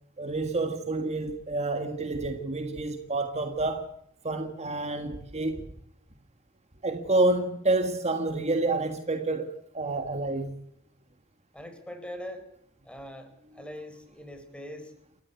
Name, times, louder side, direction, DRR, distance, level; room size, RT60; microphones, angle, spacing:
voice 1, 0.2-3.9 4.2-5.7 6.8-10.6, right 2 dB, 35° right, 1.7 m, -28 dB
voice 2, 11.5-12.4 12.8-14.9, equal, 5° left, 4.5 m, -42 dB
29.5 x 14.0 x 8.3 m
head